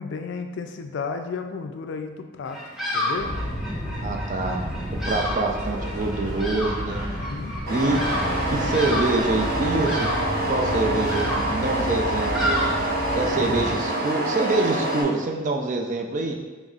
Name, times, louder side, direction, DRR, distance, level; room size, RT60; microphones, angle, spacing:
voice 1, 0.0-2.6 2.9-3.3 7.2-7.5, left 4 dB, 60° left, 6 dB, 0.3 m, -33 dB
Bird vocalization bird call bird song, 2.5-13.4, equal, ahead, 0.6 m, -31 dB
sound 1, 3.2-13.7, equal, 20° right, 1.2 m, -32 dB
voice 2, 4.0-4.6 5.1-7.0 7.7-8.0 8.5-10.1 10.5-12.7 13.1-16.4, right 3 dB, 35° right, 2 dB, 0.4 m, -25 dB
sound 2, 7.7-15.0, right 1 dB, 55° right, 1.1 m, -26 dB
5.3 x 3.1 x 2.4 m, 1.3 s
head